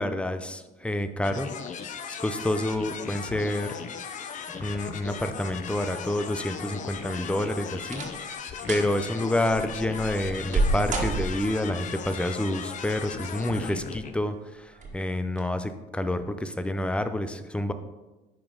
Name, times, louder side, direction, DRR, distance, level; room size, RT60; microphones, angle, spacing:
voice 1, 0.0-1.5 2.1-3.8 4.5-8.0 8.7-17.7, left 1 dB, 5° left, 10 dB, 0.5 m, -28 dB
sound 1, 1.2-14.2, left 6 dB, 50° left, 0.7 m, -38 dB
sound 2, 7.8-8.3 8.6-8.9 9.5-11.7 12.9-13.5 13.9-14.0 14.7-15.0 15.3-15.4, right 2 dB, 45° right, 1.7 m, -29 dB
9.6 x 5.2 x 3.8 m, 1.2 s
cardioid pair, 110°, 17 cm